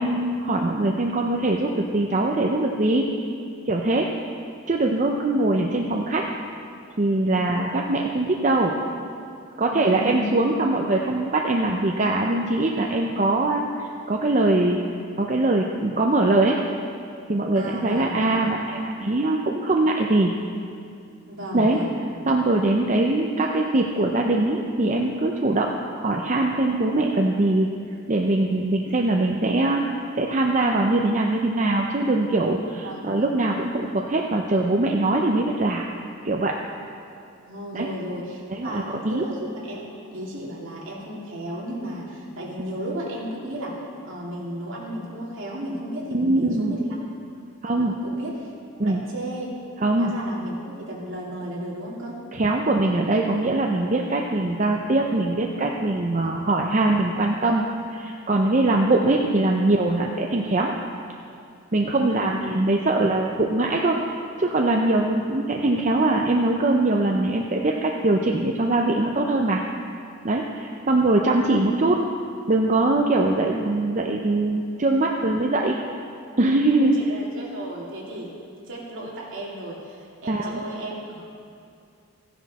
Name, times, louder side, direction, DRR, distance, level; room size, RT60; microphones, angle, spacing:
voice 1, 0.0-3.1 3.7-4.1 4.7-6.2 7.0-8.8 9.6-13.6 14.1-14.8 15.2-16.6 17.3-20.3 21.5-21.8 22.3-27.7 28.1-29.8 30.1-35.8 36.2-36.6 37.7-37.9 38.5-39.2 46.1-46.8 47.6-48.0 48.8-49.0 49.8-50.1 52.3-57.6 57.9-60.7 61.7-64.0 64.4-69.6 70.2-72.0 72.5-75.8 76.4-77.0 80.3-80.6, right 2 dB, 35° right, 0 dB, 0.6 m, -22 dB
voice 2, 7.3-7.7 9.7-10.3 17.6-18.5 21.3-22.0 32.8-33.4 37.4-43.8 44.0-46.9 47.6-48.5 48.8-49.5 50.0-52.2 56.2-56.5 61.9-62.4 76.8-78.3 78.7-81.3, equal, 60° right, -4 dB, 2.5 m, -34 dB
14.5 x 10.0 x 4.1 m, 2.4 s
head